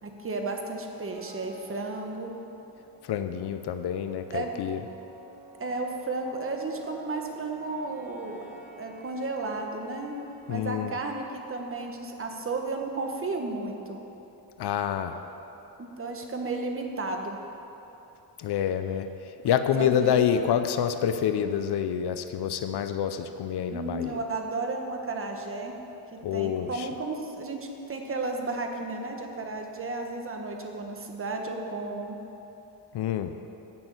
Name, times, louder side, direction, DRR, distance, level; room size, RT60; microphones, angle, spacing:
voice 1, 0.0-2.3 4.3-4.5 5.6-8.4 8.8-10.2 10.4-14.0 15.8-17.4 19.7-20.2 23.7-25.7 26.1-32.2, right 3 dB, 30° right, 3 dB, 1.3 m, -33 dB
sound 1, 1.1-13.9, right 3 dB, 70° right, 3.0 m, -52 dB
voice 2, 3.0-4.8 10.5-10.9 14.6-15.2 18.4-24.2 26.2-26.9 32.9-33.4, left 9 dB, 70° left, 9 dB, 0.7 m, -27 dB
10.5 x 6.2 x 8.1 m, 3.0 s
cardioid pair, 115°, 42 cm